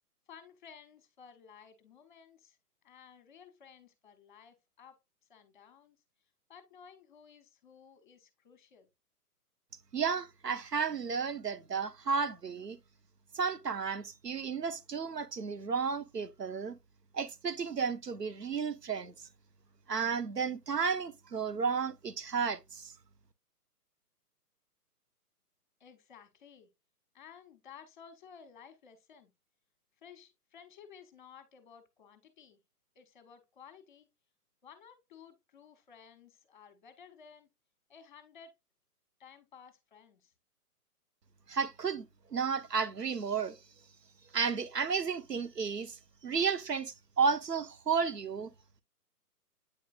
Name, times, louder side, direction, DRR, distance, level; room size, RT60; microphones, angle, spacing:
voice 1, 0.3-2.6 2.8-5.0 5.3-6.0 6.5-8.9 25.8-26.7 27.1-29.3 30.0-32.6 32.9-34.1 34.6-37.5 37.9-38.5 39.2-40.3, left 7 dB, 30° left, 1.0 m, -55 dB
voice 2, 9.9-12.8 13.3-16.7 17.1-19.3 19.9-22.9 41.5-43.6 44.3-48.5, right 5 dB, 90° right, 0.7 m, -33 dB
8.5 x 4.9 x 2.4 m
figure-of-eight pair, 130°, 47 cm